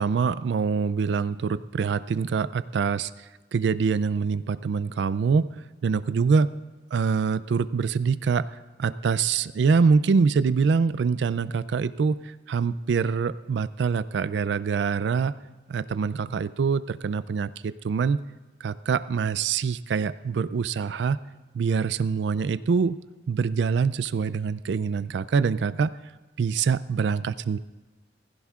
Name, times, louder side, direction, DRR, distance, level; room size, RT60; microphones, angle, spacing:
voice 1, 0.0-3.1 3.5-5.5 5.8-6.5 6.9-8.5 8.8-15.3 15.7-18.2 18.6-21.2 21.5-23.0 23.3-25.9 26.4-27.6, right 5 dB, 70° right, 15 dB, 0.3 m, -24 dB
16.5 x 15.5 x 2.4 m, 1.3 s
head